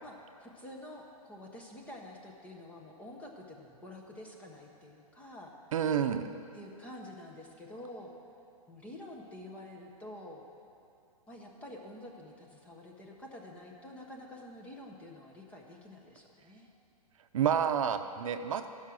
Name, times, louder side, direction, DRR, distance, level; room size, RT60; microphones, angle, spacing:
voice 1, 0.0-5.5 6.5-8.1 8.7-10.4 11.3-16.7, left 1 dB, 5° left, 0 dB, 0.5 m, -48 dB
voice 2, 5.7-6.2 17.3-18.7, right 8 dB, 60° right, 8 dB, 0.6 m, -29 dB
11.5 x 5.7 x 6.1 m, 2.6 s
hypercardioid pair, 160°, 19 cm